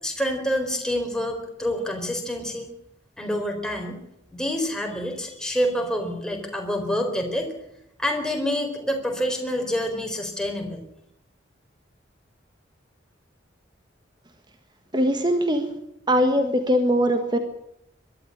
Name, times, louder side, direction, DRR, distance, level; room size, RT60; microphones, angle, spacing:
voice 1, 0.0-2.7 3.2-4.0 4.3-7.5 8.0-10.8, equal, 5° left, 2 dB, 4.2 m, -27 dB
voice 2, 14.9-15.7 16.1-17.4, equal, 25° right, 7 dB, 1.5 m, -21 dB
22.5 x 12.5 x 9.9 m, 0.79 s
head